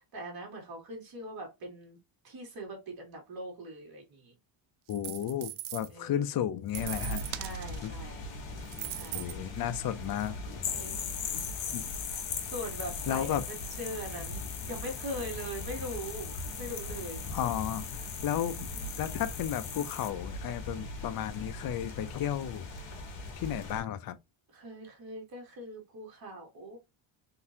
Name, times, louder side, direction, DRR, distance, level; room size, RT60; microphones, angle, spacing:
voice 1, 0.0-2.0 2.2-4.3 5.9-6.2 7.4-8.2 9.0-9.3 10.7-11.3 12.5-17.2 18.7-19.0 24.5-26.8, equal, 45° right, 2.3 m, -41 dB
voice 2, 4.9-7.2 7.8-7.9 9.1-10.4 11.3-11.4 11.7-11.8 13.1-13.4 17.3-18.7 19.0-22.7 23.4-24.2, left 10 dB, 45° left, 0.6 m, -33 dB
sound 1, 4.9-5.9 6.7-7.9 8.6-9.4 10.2-10.3, right 14 dB, 75° right, 0.7 m, -40 dB
rain and thunder, 6.7-23.8, left 1 dB, 65° left, 1.7 m, -41 dB
sound 2, 10.6-20.1, left 9 dB, 85° left, 1.3 m, -40 dB
3.9 x 3.6 x 2.7 m
cardioid pair, 145°, 49 cm